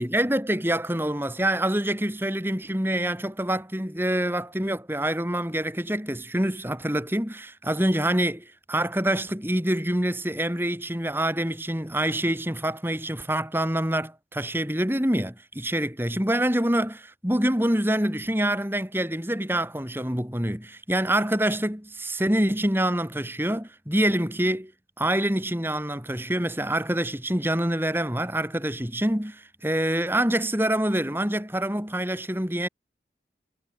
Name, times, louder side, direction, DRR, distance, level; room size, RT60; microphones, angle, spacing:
voice 1, 0.0-24.7 25.0-32.7, right 1 dB, 10° right, 4.2 m, -26 dB
head